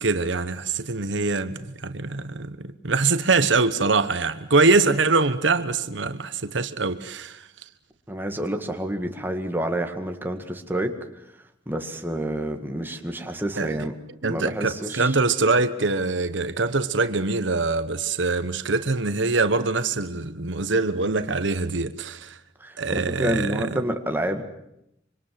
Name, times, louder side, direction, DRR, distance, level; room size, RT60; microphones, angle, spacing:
voice 1, 0.0-7.5 13.6-13.8 14.2-22.4 22.8-23.7, right 3 dB, 70° right, 1.1 m, -23 dB
voice 2, 8.1-11.0 11.7-14.0 14.3-15.1 22.6-24.4, right 1 dB, 10° right, 1.9 m, -28 dB
26.0 x 25.0 x 7.6 m
head